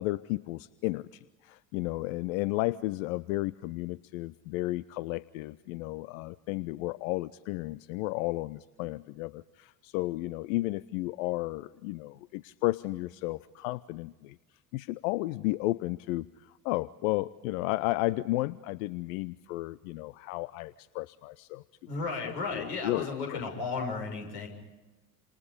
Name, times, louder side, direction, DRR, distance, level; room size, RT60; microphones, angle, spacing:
voice 1, 0.0-14.4 14.7-21.6 22.2-23.5, left 19 dB, 55° left, 19 dB, 0.7 m, -33 dB
voice 2, 21.9-24.5, left 4 dB, 70° left, 3 dB, 7.2 m, -34 dB
29.5 x 27.5 x 5.4 m, 1.2 s
figure-of-eight pair, 65°, 50 cm